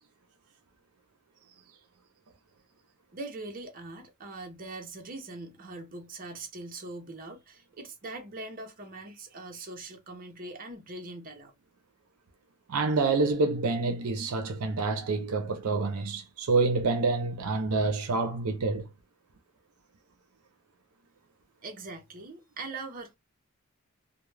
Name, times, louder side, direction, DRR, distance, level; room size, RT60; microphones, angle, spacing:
voice 1, 3.1-11.5 21.6-23.1, right 2 dB, 40° right, 0.7 m, -42 dB
voice 2, 12.7-18.8, right 3 dB, 80° right, 0.6 m, -27 dB
2.3 x 2.1 x 3.1 m
head